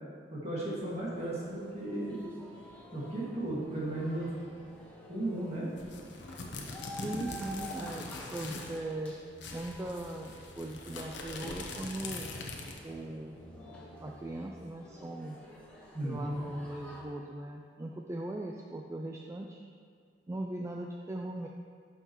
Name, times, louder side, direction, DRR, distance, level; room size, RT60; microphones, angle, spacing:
voice 1, 0.3-2.3 2.9-4.3 5.1-5.7 15.9-16.4, right 1 dB, 35° right, -6 dB, 2.1 m, -35 dB
sound 1, 0.6-17.0, equal, 10° left, 1.4 m, -50 dB
sound 2, 5.8-8.8 9.1-9.2 9.4-12.9, left 3 dB, 70° left, 0.9 m, -42 dB
voice 2, 6.9-8.0 8.3-9.1 9.5-12.3 12.8-13.4 14.0-15.4 16.0-19.6 20.3-21.5, right 1 dB, 15° right, 1 dB, 0.3 m, -39 dB
11.0 x 5.7 x 3.1 m, 2.1 s
head